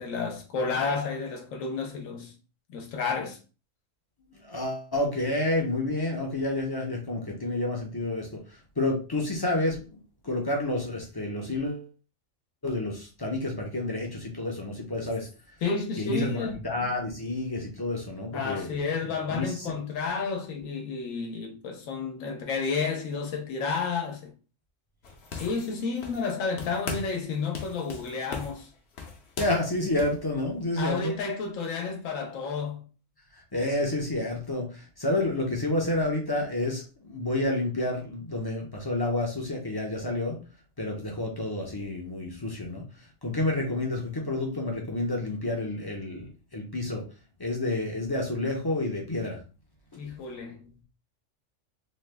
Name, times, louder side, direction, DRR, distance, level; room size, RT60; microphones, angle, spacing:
voice 1, 0.0-2.3 2.7-3.4 15.6-16.6 18.3-24.3 25.3-28.7 30.8-32.9 49.9-50.7, left 4 dB, 85° left, 1.2 m, -31 dB
voice 2, 4.4-8.4 8.8-10.0 10.2-11.9 12.6-15.3 16.0-19.7 29.4-31.2 33.5-40.4 40.8-42.8 43.2-47.0 47.4-49.4, left 2 dB, 30° left, 0.5 m, -29 dB
sound 1, 25.0-26.3 26.6-27.2 27.5-30.2, left 5 dB, 60° left, 0.9 m, -38 dB
3.1 x 2.2 x 3.2 m
omnidirectional pair, 1.3 m